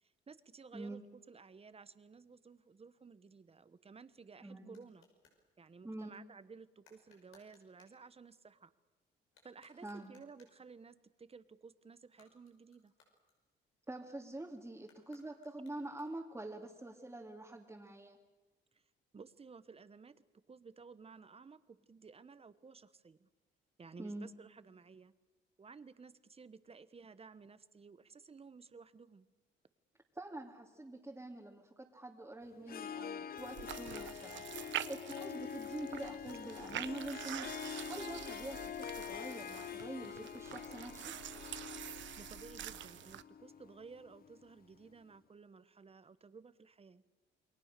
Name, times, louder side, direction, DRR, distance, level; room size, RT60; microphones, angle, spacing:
voice 1, 0.0-1.0 1.3-5.1 5.6-8.7 9.4-12.9 18.7-18.8 19.1-23.3 23.8-25.1 25.6-29.3 42.2-47.0, right 5 dB, 30° right, 14 dB, 1.2 m, -55 dB
sound 1, 3.8-5.4 6.8-8.0 9.2-10.7 12.0-13.8 14.8-16.4, left 4 dB, 85° left, 5.9 m, -69 dB
voice 2, 4.4-4.8 5.8-6.1 9.8-10.1 13.9-18.2 24.0-24.3 30.1-37.5 37.9-41.1, right 2 dB, 10° right, -2 dB, 2.6 m, -46 dB
Harp, 32.6-44.5, left 8 dB, 50° left, 0.7 m, -46 dB
sound 2, 33.4-43.2, right 12 dB, 70° right, 0.9 m, -46 dB
28.5 x 22.0 x 6.8 m, 1.2 s
cardioid pair, 90°, 20 cm